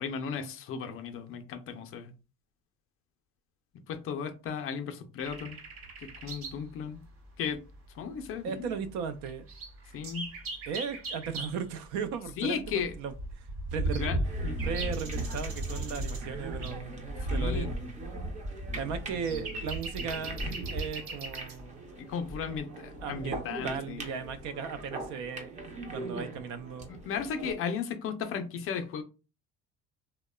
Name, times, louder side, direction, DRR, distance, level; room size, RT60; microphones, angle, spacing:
voice 1, 0.0-2.1 3.9-5.6 6.0-7.0 7.4-7.6 8.0-8.7 9.9-10.3 12.4-12.9 13.8-14.2 14.4-14.6 17.3-17.7 22.0-24.0 26.1-26.3 26.9-29.0, left 6 dB, 45° left, 0.4 m, -35 dB
sound 1, 5.2-6.7 6.9-7.0 7.7-8.4 8.8-8.9 9.2-11.6 12.3-21.6 22.3-22.6, right 1 dB, 50° right, 0.9 m, -36 dB
voice 2, 8.4-9.5 10.7-14.3 14.6-17.0 17.3-17.7 18.7-20.4 20.7-21.9 23.0-25.5 25.9-26.9, right 6 dB, 75° right, 0.5 m, -37 dB
sound 2, 14.2-27.5, right 2 dB, 25° right, 0.5 m, -41 dB
2.8 x 2.1 x 2.2 m
cardioid pair, 125°, 30 cm